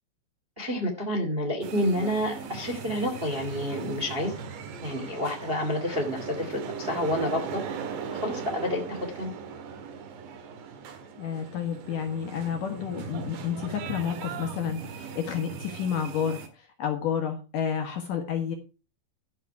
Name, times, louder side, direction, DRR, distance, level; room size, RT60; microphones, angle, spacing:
voice 1, 0.6-4.3 4.8-7.6 8.1-9.3, left 1 dB, 25° right, 2 dB, 1.4 m, -29 dB
sound 1, 1.6-16.5, right 6 dB, 80° right, 3.9 m, -39 dB
voice 2, 11.2-18.5, left 8 dB, 65° left, 5 dB, 2.4 m, -30 dB
13.0 x 6.7 x 4.7 m, 0.32 s
omnidirectional pair, 5.0 m